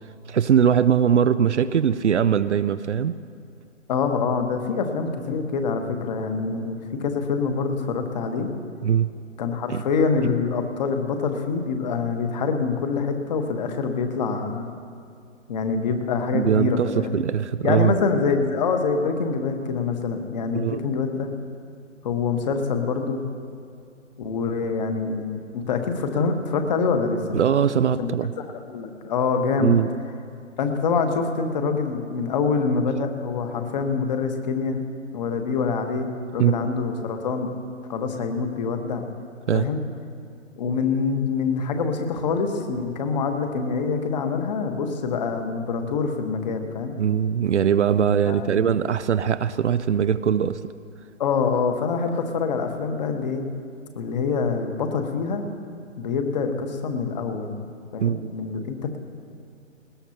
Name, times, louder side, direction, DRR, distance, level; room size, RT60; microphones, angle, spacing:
voice 1, 0.3-3.1 8.8-9.1 9.7-9.8 10.2-10.3 16.3-18.0 20.5-20.8 27.3-28.3 29.6-29.9 36.4-36.7 39.5-39.7 47.0-50.6 58.0-58.3, right 8 dB, 65° right, 14 dB, 0.6 m, -21 dB
voice 2, 3.9-8.5 9.4-14.7 15.5-17.1 17.6-21.3 22.0-23.2 24.2-27.4 28.0-29.8 30.6-34.8 35.1-37.5 37.9-39.0 39.5-39.8 40.6-46.9 48.3-48.6 51.2-53.4 53.9-55.4 56.0-57.6 57.9-59.0, left 5 dB, 35° left, 6 dB, 1.5 m, -25 dB
20.0 x 18.5 x 2.9 m, 2.3 s
figure-of-eight pair, 145°, 38 cm